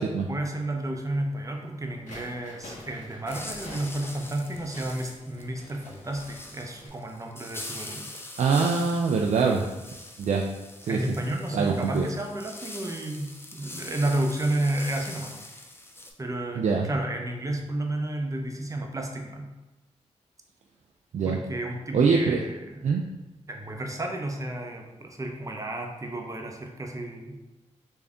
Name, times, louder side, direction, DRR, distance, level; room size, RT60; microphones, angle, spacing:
voice 1, 0.3-8.1 10.9-15.3 16.2-19.5 21.2-22.9 23.5-27.4, right 1 dB, 25° right, 2 dB, 0.7 m, -32 dB
sound 1, 2.1-6.9, left 1 dB, 80° left, 0.8 m, -46 dB
sound 2, 3.3-16.1, left 1 dB, 20° left, 0.6 m, -43 dB
voice 2, 8.4-9.7 10.2-10.4 10.8-11.0 11.5-12.1 16.6-16.9 21.1-21.4 21.9-22.4 22.8-23.0, right 5 dB, 70° right, 0 dB, 0.4 m, -23 dB
3.4 x 2.6 x 3.5 m, 1.1 s
cardioid pair, 60°, 12 cm